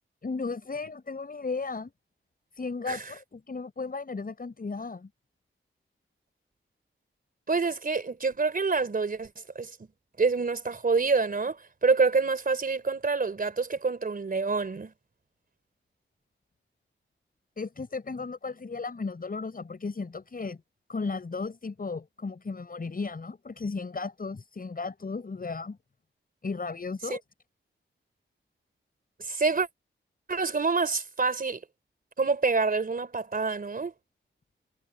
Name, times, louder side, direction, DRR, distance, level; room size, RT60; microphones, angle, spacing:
voice 1, 0.2-1.9 2.5-5.1 17.6-20.6 20.9-25.8 26.4-27.2, left 4 dB, 45° left, 7.4 m, -35 dB
voice 2, 7.5-9.3 9.6-9.7 10.2-11.6 11.8-14.9 29.2-29.7 30.3-31.6 32.2-33.9, right 4 dB, 45° right, 3.7 m, -26 dB
wide cardioid pair, 130°, 21 cm